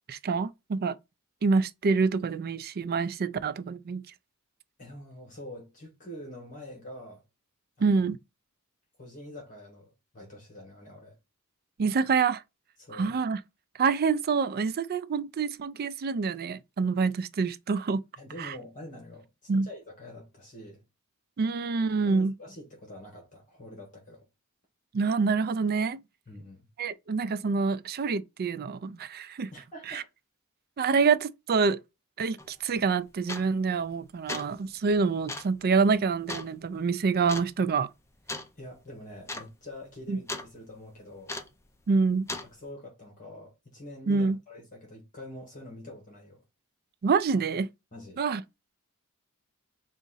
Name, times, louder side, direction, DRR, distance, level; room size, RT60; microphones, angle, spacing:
voice 1, 0.1-1.0 1.4-4.0 7.8-8.2 11.8-12.4 12.9-13.4 13.8-18.0 18.4-18.5 19.5-19.7 21.4-22.3 24.9-26.0 26.8-29.5 29.9-30.0 30.8-31.8 32.2-37.9 40.1-40.2 41.9-42.3 44.1-44.4 47.0-47.7 48.2-48.4, right 4 dB, 45° right, 0.4 m, -26 dB
voice 2, 4.8-7.2 7.8-8.0 9.0-11.2 12.8-13.2 18.2-20.8 22.0-24.2 26.3-26.7 29.5-30.1 38.6-41.3 42.4-46.4 47.9-48.2, left 1 dB, 35° left, 1.4 m, -45 dB
sound 1, 32.4-32.5 33.3-33.7 34.1-34.6 35.3-35.6 36.3-36.5 37.3-37.5 38.3-38.5 38.8-38.9 39.2-39.5 39.8-40.5 41.3-41.6 42.3-42.5, left 2 dB, 10° left, 0.5 m, -36 dB
4.0 x 2.5 x 3.9 m
head